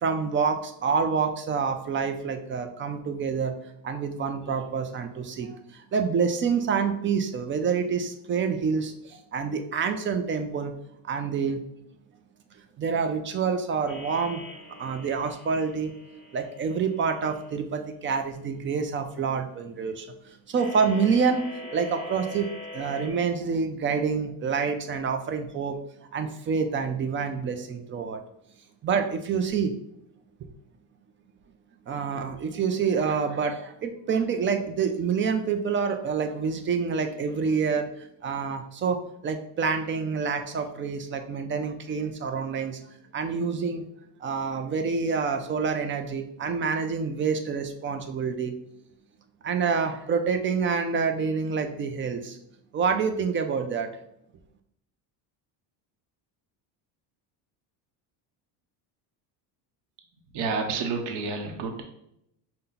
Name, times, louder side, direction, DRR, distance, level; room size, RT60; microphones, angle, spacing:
voice 1, 0.0-3.6 3.8-10.7 11.0-11.6 12.8-14.4 14.8-15.9 16.3-20.1 20.5-22.5 22.7-25.8 26.1-28.2 28.8-29.7 30.4-30.5 31.9-39.0 39.2-42.8 43.1-43.8 44.2-48.5 49.4-52.4 52.7-53.9, right 5 dB, 25° right, 6 dB, 0.4 m, -27 dB
sound 1, 13.9-17.5 20.6-23.1, left 2 dB, 15° left, 1.2 m, -43 dB
voice 2, 60.3-61.8, right 4 dB, 60° right, 4 dB, 0.8 m, -29 dB
5.5 x 2.2 x 3.8 m, 0.77 s
cardioid pair, 120°, 47 cm